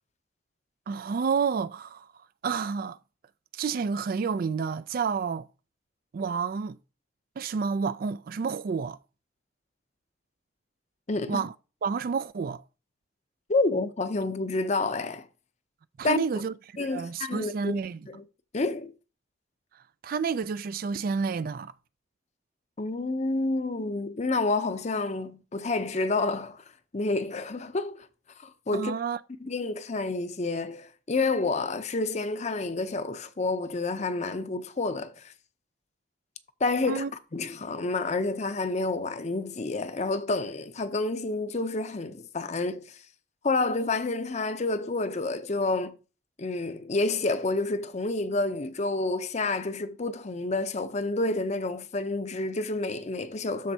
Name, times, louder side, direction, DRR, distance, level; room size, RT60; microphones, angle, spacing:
voice 1, 0.9-2.1 2.4-3.0 3.5-5.5 6.1-6.8 7.4-9.0 11.3-11.5 11.8-12.6 16.0-18.0 20.0-21.7 28.7-29.2 36.9-37.1, right 5 dB, 50° right, 0.3 m, -29 dB
voice 2, 11.1-11.5 13.5-15.3 16.0-16.4 16.8-17.8 18.1-18.2 18.5-18.9 22.8-26.6 26.9-28.1 28.4-28.9 29.4-35.3 36.6-37.0 37.3-43.0 43.4-46.0 46.4-53.7, left 3 dB, 40° left, 0.6 m, -29 dB
13.0 x 4.4 x 2.8 m
head